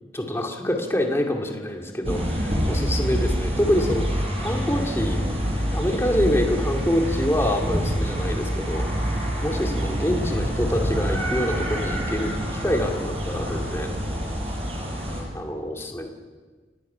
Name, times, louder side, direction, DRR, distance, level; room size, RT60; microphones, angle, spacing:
voice 1, 0.1-5.2 5.7-8.9 9.4-14.0 15.3-16.1, left 1 dB, 15° left, 1 dB, 2.3 m, -26 dB
sound 1, 2.0-15.2, equal, 30° right, 5.5 m, -26 dB
29.0 x 18.5 x 5.7 m, 1.4 s
head